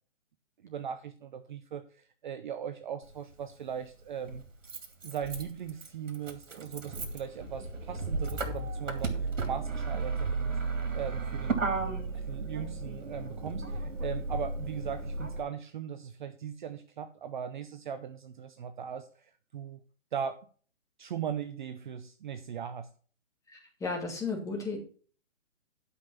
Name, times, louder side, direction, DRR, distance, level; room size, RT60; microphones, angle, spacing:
voice 1, 0.6-4.4 5.0-10.6 10.9-11.6 12.1-19.8 20.1-20.4 21.0-22.9, right 8 dB, 40° right, 10 dB, 0.7 m, -39 dB
Motor vehicle (road), 3.0-3.1 4.3-15.4, right 3 dB, 75° right, 2.6 m, -34 dB
voice 2, 23.5-24.8, left 4 dB, 10° left, -1 dB, 2.5 m, -34 dB
11.5 x 5.5 x 5.7 m, 0.42 s
figure-of-eight pair, 140°, 38 cm